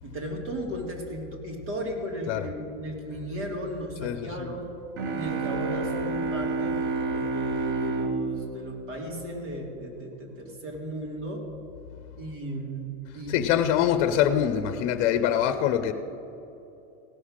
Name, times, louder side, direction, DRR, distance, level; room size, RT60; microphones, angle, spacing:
voice 1, 0.0-4.7 5.1-11.4 12.2-13.6, right 1 dB, 85° right, 0 dB, 3.1 m, -36 dB
voice 2, 4.0-4.5 13.3-15.9, left 10 dB, 40° left, 10 dB, 0.6 m, -24 dB
sound 1, 5.0-9.6, right 3 dB, 35° right, 0.8 m, -30 dB
16.5 x 5.7 x 6.5 m, 2.9 s
supercardioid pair, 160°, 36 cm